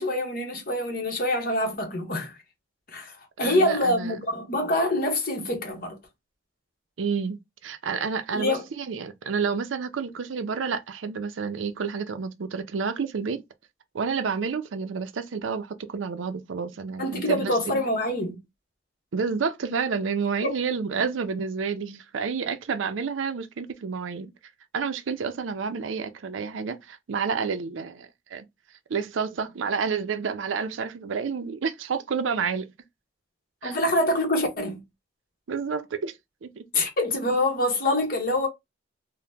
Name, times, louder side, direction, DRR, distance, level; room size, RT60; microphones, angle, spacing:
voice 1, 0.0-2.4 2.9-6.0 8.3-8.6 17.0-18.4 20.4-20.5 33.6-34.8 36.7-38.5, left 1 dB, 50° left, 1.0 m, -25 dB
voice 2, 3.4-4.2 7.0-13.4 13.9-17.8 19.1-24.3 24.7-28.5 28.9-32.7 33.6-33.8 35.5-36.6, right 5 dB, 90° right, 0.5 m, -30 dB
2.8 x 2.1 x 3.3 m
head